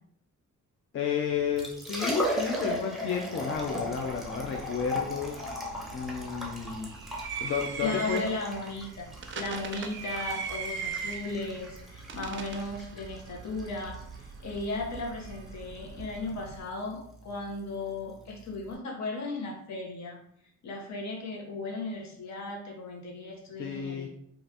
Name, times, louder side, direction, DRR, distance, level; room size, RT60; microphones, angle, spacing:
voice 1, 0.9-5.3 5.9-7.0 7.4-8.2 23.6-24.1, left 7 dB, 45° left, 1 dB, 0.4 m, -31 dB
Liquid, 1.4-18.7, equal, ahead, 0.7 m, -38 dB
sound 1, 3.5-16.6, right 6 dB, 40° right, 0.4 m, -41 dB
voice 2, 7.8-20.2 20.6-24.1, left 2 dB, 65° left, 0 dB, 0.9 m, -36 dB
3.0 x 2.5 x 2.8 m, 0.72 s
cardioid pair, 90°, 30 cm